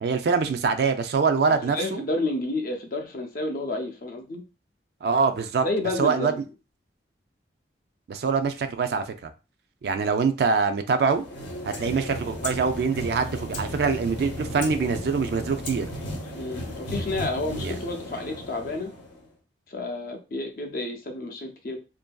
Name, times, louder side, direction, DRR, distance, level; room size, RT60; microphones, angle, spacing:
voice 1, 0.0-2.0 5.0-5.6 6.0-6.3 8.1-9.3 9.8-11.2 11.6-15.9 17.6-17.7, right 5 dB, 60° right, 0.3 m, -24 dB
voice 2, 1.5-4.4 5.6-6.4 16.4-18.9 19.7-21.8, left 2 dB, 50° left, 0.5 m, -30 dB
sound 1, 11.0-19.3, equal, 90° left, 0.8 m, -35 dB
2.6 x 2.5 x 2.2 m
head